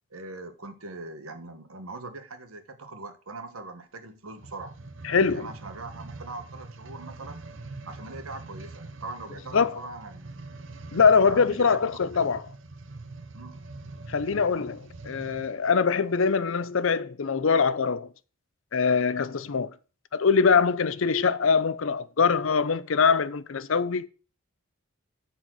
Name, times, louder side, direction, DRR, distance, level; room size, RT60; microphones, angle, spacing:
voice 1, 0.1-4.8 5.1-7.4 7.9-10.4 10.9-11.7 12.1-12.4 13.3-13.7, right 3 dB, 80° right, 1.3 m, -41 dB
sound 1, 4.3-15.6 16.2-16.3, right 3 dB, 60° right, 0.8 m, -44 dB
voice 2, 5.0-5.5 9.5-9.8 10.9-12.4 14.1-18.1 18.7-19.7 20.1-24.1, left 5 dB, 70° left, 0.6 m, -23 dB
10.0 x 4.4 x 6.1 m
head